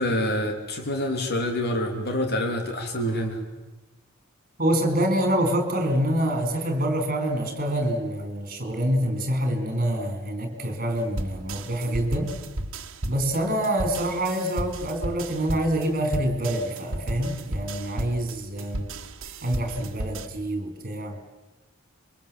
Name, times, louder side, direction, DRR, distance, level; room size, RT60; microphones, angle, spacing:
voice 1, 0.0-3.4, left 1 dB, 50° left, 4 dB, 3.1 m, -26 dB
voice 2, 4.6-12.3 13.1-18.8 19.4-21.2, right 1 dB, 40° right, 7 dB, 4.2 m, -26 dB
sound 1, 11.2-20.3, right 1 dB, 65° right, 1.7 m, -34 dB
26.5 x 23.0 x 7.5 m, 1.1 s
head